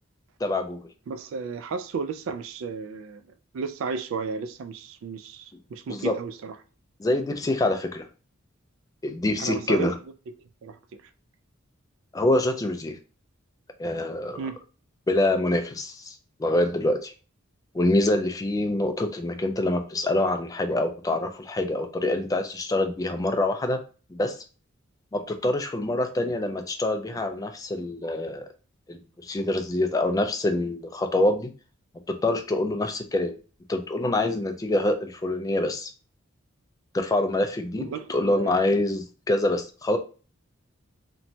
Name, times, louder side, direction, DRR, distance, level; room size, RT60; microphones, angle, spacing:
voice 1, 0.4-0.8 5.9-6.1 7.0-8.1 9.0-9.9 12.1-13.0 13.8-14.4 15.1-17.1 17.7-23.8 24.1-24.3 25.1-28.5 28.9-31.5 32.2-33.3 33.7-35.9 36.9-40.0, left 1 dB, 15° left, 0.3 m, -25 dB
voice 2, 1.1-3.2 3.5-6.5 9.4-9.9 10.6-10.8 14.3-14.6 37.7-38.5, right 5 dB, 70° right, 0.3 m, -33 dB
3.0 x 2.1 x 2.6 m
head